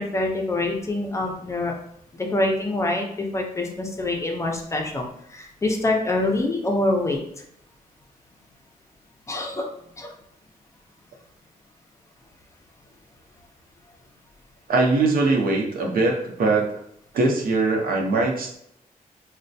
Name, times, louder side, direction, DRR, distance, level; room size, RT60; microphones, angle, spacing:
voice 1, 0.0-1.8 2.1-7.2 9.3-9.7 10.0-10.1, left 2 dB, 20° left, 1 dB, 0.5 m, -25 dB
voice 2, 14.7-16.7 17.1-18.6, right 3 dB, 75° right, 1 dB, 0.7 m, -21 dB
4.1 x 2.1 x 2.6 m, 0.73 s
wide cardioid pair, 160°, 15 cm